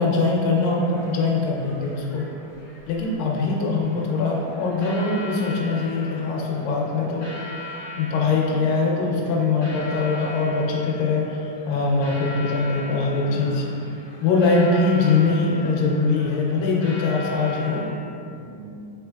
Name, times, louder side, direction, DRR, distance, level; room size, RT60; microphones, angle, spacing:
voice 1, 0.0-2.3 2.9-7.3 8.0-13.7 14.2-17.8, left 3 dB, 80° left, -2 dB, 2.2 m, -22 dB
sound 1, 0.5-17.9, left 2 dB, 60° left, 1.5 m, -40 dB
voice 2, 4.0-4.4 7.8-7.9 8.2-8.7 13.0-14.2 15.0-15.5 17.8-18.8, right 2 dB, 80° right, -9 dB, 1.8 m, -44 dB
5.6 x 3.5 x 2.3 m, 2.6 s
omnidirectional pair, 4.3 m